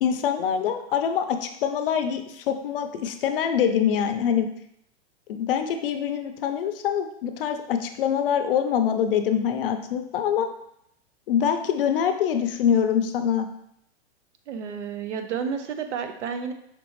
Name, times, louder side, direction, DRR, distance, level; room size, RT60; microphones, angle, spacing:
voice 1, 0.0-4.5 5.3-10.5 11.3-13.5, left 8 dB, 55° left, 7 dB, 0.5 m, -24 dB
voice 2, 14.5-16.5, right 6 dB, 90° right, 7 dB, 0.7 m, -31 dB
5.1 x 3.3 x 3.1 m, 0.75 s
supercardioid pair, 165°, 34 cm